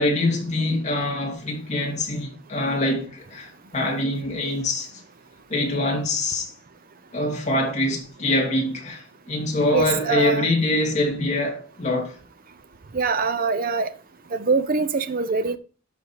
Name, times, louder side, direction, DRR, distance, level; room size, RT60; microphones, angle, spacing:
voice 1, 0.0-4.9 5.5-6.5 7.1-12.2, left 2 dB, 35° left, 2.6 m, -24 dB
voice 2, 9.7-10.4 12.9-13.9 14.3-15.6, right 4 dB, 40° right, 0.6 m, -23 dB
13.0 x 5.3 x 3.0 m
head